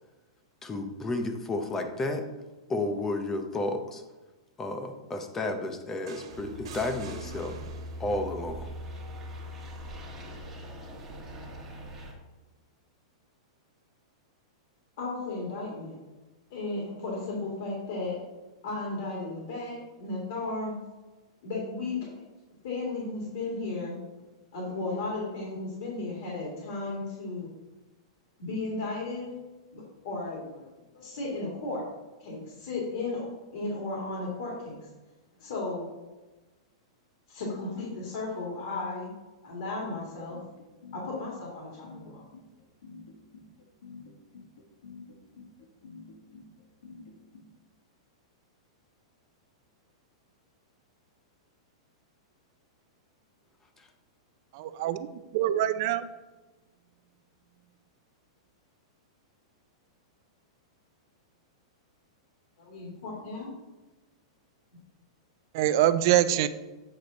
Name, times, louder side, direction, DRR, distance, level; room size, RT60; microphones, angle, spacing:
voice 1, 0.6-2.2 2.7-4.0 4.6-7.6 8.0-8.7 53.8-53.9, left 2 dB, 10° left, 6 dB, 0.6 m, -32 dB
sound 1, 6.1-8.2 9.6-9.8, right 5 dB, 65° right, 1.4 m, -46 dB
sound 2, 6.3-12.1, equal, 10° right, 1.3 m, -41 dB
voice 2, 15.0-16.0 16.5-18.2 18.6-20.8 21.4-22.2 22.6-23.9 24.5-27.5 28.4-29.3 29.7-30.7 30.9-31.8 32.2-34.9 35.4-35.9 37.3-39.1 39.4-40.4 40.9-42.2 62.7-63.5, left 3 dB, 55° left, -3 dB, 2.3 m, -34 dB
sound 3, 39.8-47.4, left 4 dB, 85° left, 1.6 m, -48 dB
voice 3, 54.5-55.1 55.3-56.1 65.5-66.5, right 12 dB, 40° right, 13 dB, 0.4 m, -24 dB
8.3 x 5.0 x 4.0 m, 1.1 s
supercardioid pair, 170°, 3 cm